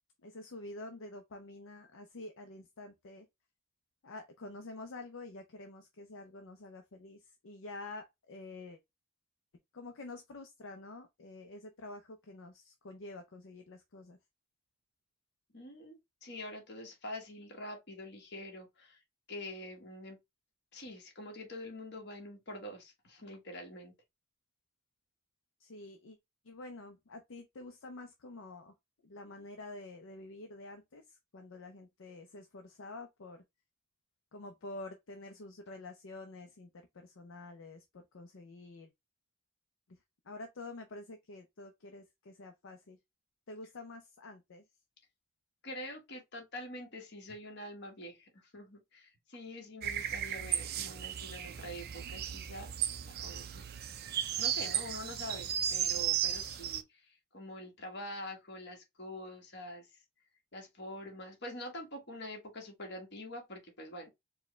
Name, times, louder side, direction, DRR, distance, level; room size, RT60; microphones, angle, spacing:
voice 1, 0.2-3.3 4.0-8.8 9.7-14.2 25.6-26.2 26.4-28.7 29.0-33.4 34.3-36.7 36.9-38.9 39.9-40.0 40.2-43.0 43.5-44.6, left 2 dB, 65° left, 0.6 m, -48 dB
voice 2, 15.5-19.0 19.3-20.2 20.7-23.9 45.6-52.7 53.2-54.1 54.4-60.0 60.5-64.1, left 1 dB, 50° left, 1.4 m, -45 dB
sound 1, 49.8-56.8, right 10 dB, 45° right, 0.4 m, -35 dB
4.6 x 2.2 x 3.1 m
head